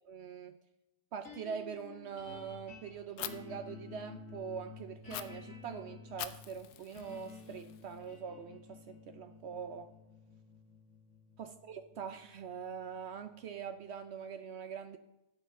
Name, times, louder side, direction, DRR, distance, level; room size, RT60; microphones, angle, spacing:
voice 1, 0.1-0.6 1.1-9.9 11.4-15.0, right 7 dB, 70° right, 0.6 m, -43 dB
sound 1, 1.2-13.5, left 4 dB, 55° left, 2.4 m, -52 dB
Fire, 3.2-3.3 5.1-5.2 6.2-8.1, left 12 dB, 75° left, 1.1 m, -44 dB
11.5 x 8.0 x 3.6 m
omnidirectional pair, 1.7 m